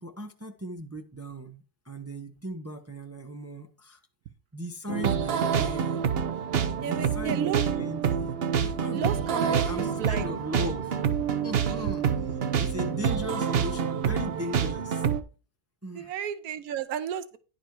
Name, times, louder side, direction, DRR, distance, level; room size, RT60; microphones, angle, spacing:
voice 1, 0.0-4.0 4.5-6.0 6.8-11.0 11.4-15.0 15.8-16.2, equal, 15° right, 0.5 m, -38 dB
sound 1, 4.9-15.2, right 7 dB, 50° right, 0.8 m, -27 dB
voice 2, 6.8-7.6 8.9-10.3 11.8-12.0 15.9-17.4, right 9 dB, 80° right, 1.2 m, -33 dB
10.5 x 5.0 x 4.6 m
omnidirectional pair, 1.6 m